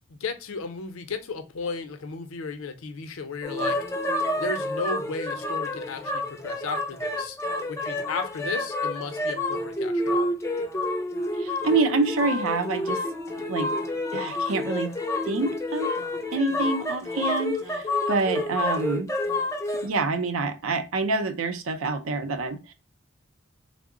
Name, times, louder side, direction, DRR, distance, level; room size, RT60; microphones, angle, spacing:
voice 1, 0.1-3.8 4.4-7.4 7.7-10.3, left 4 dB, 85° left, 0.6 m, -34 dB
sound 1, 3.4-19.9, left 2 dB, 15° left, 0.3 m, -29 dB
voice 2, 11.4-13.0 13.5-13.7 14.1-14.9 15.2-16.0 16.3-19.1 19.8-22.7, right 3 dB, 85° right, 0.5 m, -27 dB
3.7 x 2.0 x 3.5 m
head